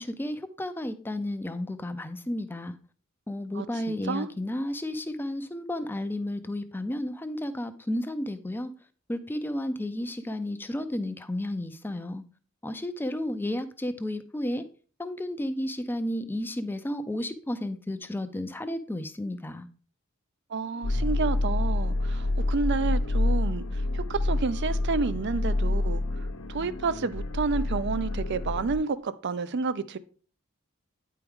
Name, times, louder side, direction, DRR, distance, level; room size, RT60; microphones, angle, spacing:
voice 1, 0.0-2.8 3.3-8.7 9.1-12.2 12.6-14.6 15.0-19.7, left 1 dB, 10° left, 0.4 m, -32 dB
voice 2, 3.5-4.3 20.5-26.0 26.5-30.0, right 4 dB, 50° right, 0.4 m, -30 dB
sound 1, 20.8-28.8, left 2 dB, 85° left, 0.8 m, -28 dB
9.6 x 4.6 x 3.6 m
head